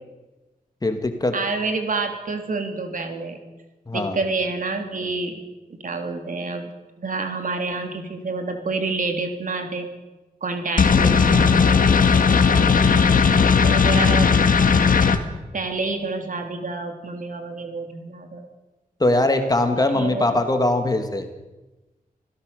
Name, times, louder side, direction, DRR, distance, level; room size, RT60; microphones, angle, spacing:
voice 1, 0.8-1.3 3.9-4.2 19.0-21.2, left 2 dB, 25° left, 6 dB, 2.4 m, -21 dB
voice 2, 1.3-3.4 3.9-5.4 5.8-6.7 7.0-9.9 10.4-11.7 12.6-13.2 13.6-14.3 14.6-14.8 15.5-18.5 19.9-20.3, right 3 dB, 60° right, 5 dB, 3.1 m, -28 dB
sound 1, 10.8-15.2, left 5 dB, 65° left, 1.7 m, -16 dB
26.5 x 16.5 x 6.9 m, 1.1 s
wide cardioid pair, 130°, 15 cm